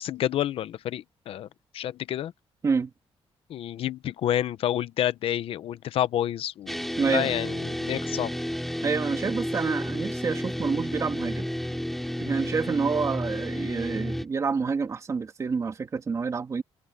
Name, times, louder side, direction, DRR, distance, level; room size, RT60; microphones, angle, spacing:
voice 1, 0.0-1.5 1.7-2.3 3.5-6.8 7.1-8.4, left 11 dB, 75° left, 0.8 m, -29 dB
sound 1, 6.7-14.3, equal, ahead, 2.7 m, -31 dB
voice 2, 7.0-7.3 8.8-11.5 12.2-16.6, right 5 dB, 30° right, 2.5 m, -28 dB
cardioid pair, 155°, 10 cm